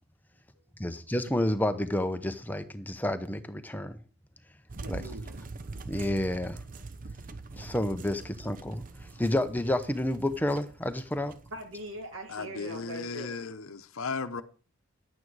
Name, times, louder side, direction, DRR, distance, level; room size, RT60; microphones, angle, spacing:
voice 1, 0.8-4.0 4.9-5.0 5.9-6.6 7.6-11.3, left 1 dB, 10° left, 0.7 m, -30 dB
sound 1, 4.7-12.3, right 3 dB, 40° right, 0.7 m, -43 dB
voice 2, 4.8-5.4 11.5-13.3, right 1 dB, 65° right, 1.7 m, -41 dB
voice 3, 12.3-14.4, left 4 dB, 75° left, 0.8 m, -36 dB
11.0 x 8.8 x 4.7 m
head